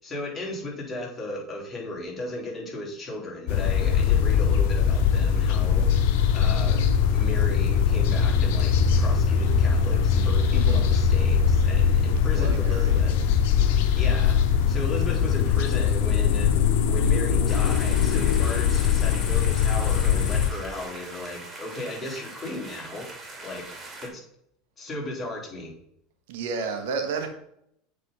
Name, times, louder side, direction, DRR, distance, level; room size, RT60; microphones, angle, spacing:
voice 1, 0.0-5.9 6.3-6.9 7.1-13.2 14.0-16.6 16.8-23.1 23.4-23.7 24.0-24.2 24.8-25.7, left 2 dB, 25° left, -2 dB, 3.5 m, -35 dB
sound 1, 3.5-20.5, left 7 dB, 65° left, 0.8 m, -21 dB
voice 2, 10.5-10.9 12.0-12.9 26.3-27.3, right 5 dB, 70° right, 5 dB, 1.5 m, -32 dB
sound 2, 17.5-24.1, right 2 dB, 25° right, 2.7 m, -42 dB
7.9 x 4.1 x 5.5 m, 0.73 s
hypercardioid pair, 80°, 0 cm